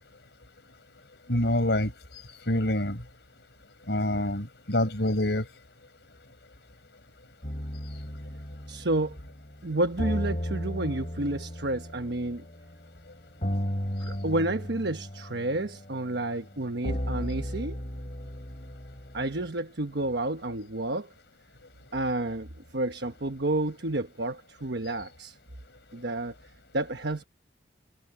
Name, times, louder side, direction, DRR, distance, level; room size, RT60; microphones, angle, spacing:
voice 1, 1.3-1.9 2.5-3.0 3.9-5.5, left 1 dB, 70° left, 5.7 m, -26 dB
sound 1, 7.4-19.5, equal, 40° left, 3.9 m, -35 dB
voice 2, 8.7-9.2 9.6-12.4 14.0-17.8 19.1-21.1 21.9-25.4 25.9-26.3 26.7-27.2, right 2 dB, 70° right, 1.2 m, -30 dB
head